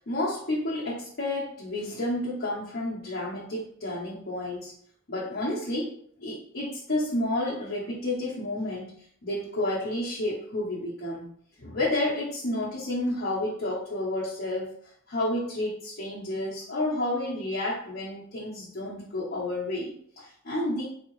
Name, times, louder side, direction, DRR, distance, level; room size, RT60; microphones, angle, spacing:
voice 1, 0.1-4.7 5.1-11.3 11.6-14.8 15.1-20.8, left 1 dB, 50° left, -7 dB, 0.9 m, -30 dB
4.2 x 2.7 x 3.0 m, 0.62 s
head